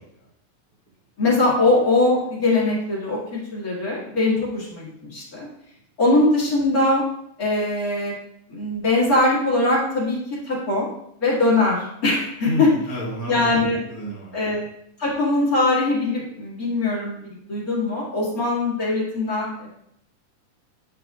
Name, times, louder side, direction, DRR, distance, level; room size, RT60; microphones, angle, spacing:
voice 1, 1.2-5.5 6.0-7.0 7.4-8.1 8.5-10.2 10.5-10.9 11.2-12.7 13.3-13.8 14.3-14.7 15.0-19.7, left 2 dB, 30° left, -7 dB, 1.9 m, -21 dB
voice 2, 12.4-14.6, equal, 15° left, -6 dB, 0.5 m, -30 dB
9.3 x 5.8 x 2.4 m, 0.73 s
omnidirectional pair, 3.8 m